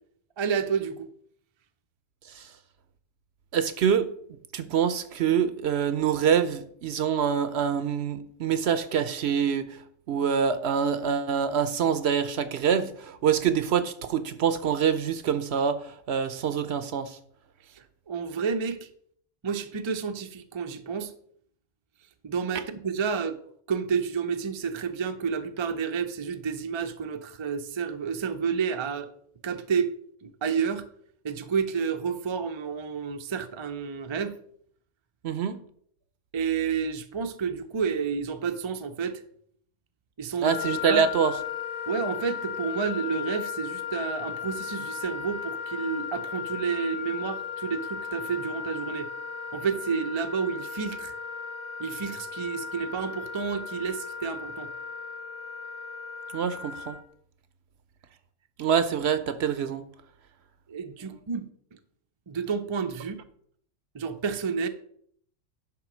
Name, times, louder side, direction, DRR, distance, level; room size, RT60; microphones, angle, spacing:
voice 1, 0.4-1.1 17.7-18.9 19.4-21.1 22.2-23.4 23.7-29.1 29.4-29.9 30.2-30.9 31.2-34.4 36.3-39.2 40.2-40.5 40.8-41.0 41.9-49.1 49.5-51.1 51.8-54.7 60.7-61.5 62.3-63.2 63.9-64.7, right 6 dB, 35° right, 0.5 m, -30 dB
voice 2, 3.5-4.1 4.5-17.2 35.2-35.6 40.4-41.4 56.3-57.0 58.6-59.8, right 7 dB, 65° right, 0.8 m, -25 dB
Wind instrument woodwind instrument, 40.4-57.0, left 7 dB, 45° left, 1.5 m, -36 dB
10.5 x 3.7 x 6.1 m
omnidirectional pair, 1.3 m